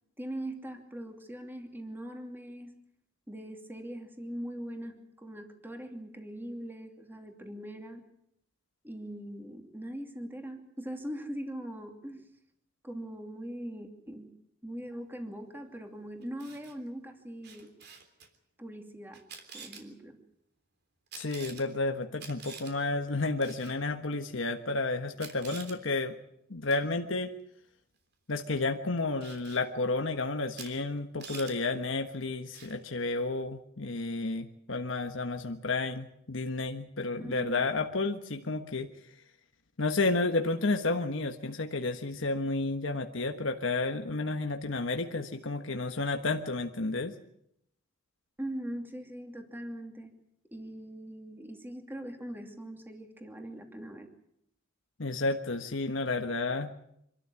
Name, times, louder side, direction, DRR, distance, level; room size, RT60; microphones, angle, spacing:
voice 1, 0.2-2.8 3.3-8.0 8.8-12.2 12.8-14.3 14.6-17.7 18.6-19.3 19.5-20.2 37.2-37.7 48.4-50.1 50.5-54.1, right 1 dB, 10° right, 4 dB, 2.7 m, -41 dB
Camera, 16.2-16.7 17.4-18.3 19.1-19.8 21.1-21.6 22.2-22.7 23.4-23.7 24.7-24.8 25.2-25.8 26.7-26.9 29.2-29.6 30.5-30.7 31.0-31.5 32.5-32.8, right 6 dB, 55° right, 3.4 m, -47 dB
voice 2, 21.2-26.1 26.5-27.3 28.3-38.9 39.8-47.1 55.0-56.8, left 3 dB, 70° left, 5 dB, 1.4 m, -31 dB
26.0 x 13.0 x 9.7 m, 0.76 s
head